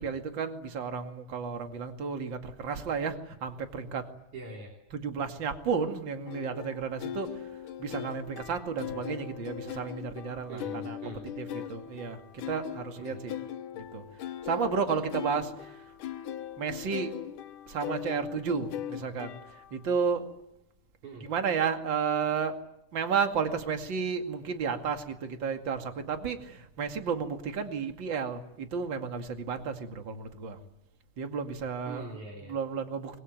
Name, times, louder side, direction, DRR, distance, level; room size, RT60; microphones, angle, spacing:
voice 1, 0.0-4.1 4.9-7.4 7.8-11.0 11.4-13.4 13.8-14.0 14.5-15.8 16.6-17.2 17.7-20.3 21.3-22.6 22.9-30.6 31.2-32.0 32.5-33.2, right 6 dB, 40° right, 6 dB, 2.6 m, -32 dB
voice 2, 4.3-4.7 10.5-11.7 13.0-13.2 21.0-21.3 31.8-32.6, right 3 dB, 70° right, 1 dB, 4.7 m, -43 dB
sound 1, 6.3-19.9, left 10 dB, 90° left, 2.8 m, -40 dB
25.0 x 22.5 x 9.3 m, 0.84 s
omnidirectional pair, 3.5 m